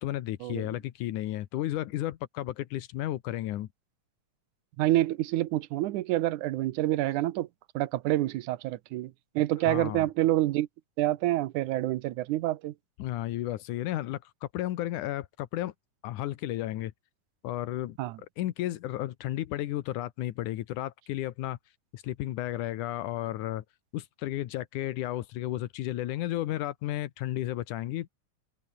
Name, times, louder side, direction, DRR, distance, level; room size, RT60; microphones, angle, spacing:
voice 1, 0.0-3.7 9.7-10.1 13.0-15.7 16.0-16.9 17.4-18.0 18.4-21.6 21.9-23.6 23.9-28.1, left 14 dB, 85° left, 2.5 m, -33 dB
voice 2, 4.8-7.5 7.8-10.7 11.0-12.7 18.0-18.2, right 15 dB, 80° right, 2.3 m, -27 dB
open air
omnidirectional pair, 3.5 m